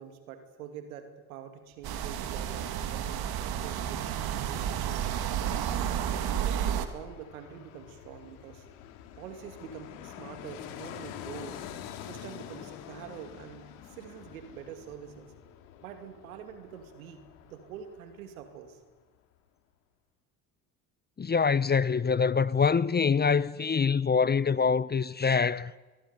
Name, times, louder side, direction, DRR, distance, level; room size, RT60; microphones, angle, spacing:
voice 1, 0.0-5.1 5.8-8.7 9.2-11.6 12.0-15.3 15.8-18.8, right 8 dB, 85° right, 2.6 m, -45 dB
Fixed-wing aircraft airplane, 1.7-18.7 19.0-19.1, left 10 dB, 80° left, 2.7 m, -48 dB
sound 1, 1.8-6.9, right 9 dB, 60° right, 2.4 m, -31 dB
voice 2, 21.2-25.7, left 5 dB, 25° left, 0.8 m, -25 dB
23.5 x 21.5 x 9.6 m
hypercardioid pair, 60°, 41 cm